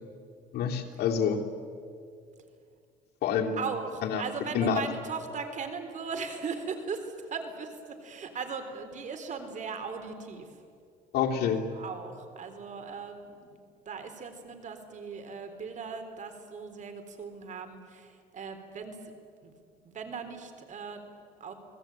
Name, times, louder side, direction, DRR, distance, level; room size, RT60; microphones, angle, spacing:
voice 1, 0.5-1.4 3.2-3.6 4.0-4.2 4.5-4.9 11.1-11.6, left 7 dB, 70° left, 1 dB, 3.2 m, -27 dB
voice 2, 3.6-10.5 11.7-13.6 13.9-19.1 19.4-19.5 19.8-21.0 21.4-21.5, right 5 dB, 45° right, 7 dB, 3.9 m, -38 dB
29.5 x 20.0 x 9.1 m, 2.3 s
cardioid pair, 110°, 17 cm